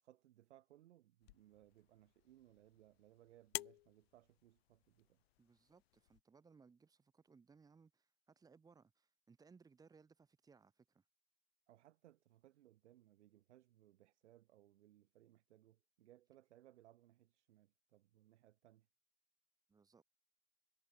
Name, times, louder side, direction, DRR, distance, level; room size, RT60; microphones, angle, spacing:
voice 1, 0.0-5.2 11.7-18.9, right 13 dB, 75° right, 2.7 m, -66 dB
sound 1, 1.2-6.2, left 17 dB, 60° left, 1.2 m, -53 dB
voice 2, 5.4-11.0 19.7-20.0, right 5 dB, 10° right, 5.1 m, -66 dB
supercardioid pair, 160°, 35 cm